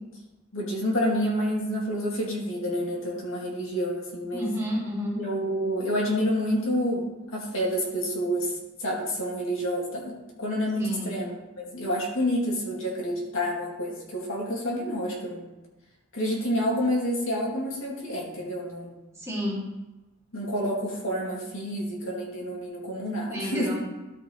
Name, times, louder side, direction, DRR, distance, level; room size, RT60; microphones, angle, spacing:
voice 1, 0.5-4.5 5.2-7.1 7.3-8.5 8.8-15.5 16.1-19.0 19.4-19.5 20.3-23.7, equal, 65° left, -3 dB, 2.3 m, -28 dB
voice 2, 4.3-5.2 10.8-11.2 19.2-19.7 23.3-23.8, equal, 15° right, -6 dB, 2.8 m, -31 dB
12.5 x 4.6 x 4.4 m, 1.1 s
head